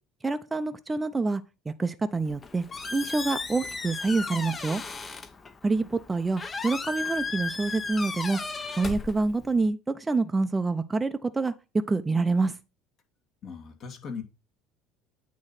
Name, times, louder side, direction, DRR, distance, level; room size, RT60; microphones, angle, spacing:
voice 1, 0.2-2.6 2.9-4.8 5.6-8.4 8.8-11.5 11.9-12.5, right 3 dB, 20° right, 0.6 m, -27 dB
Squeak, 2.2-9.7, left 4 dB, 30° left, 0.9 m, -36 dB
voice 2, 13.4-14.2, left 5 dB, 50° left, 2.3 m, -38 dB
8.9 x 3.1 x 5.9 m
hypercardioid pair, 75°, 0 cm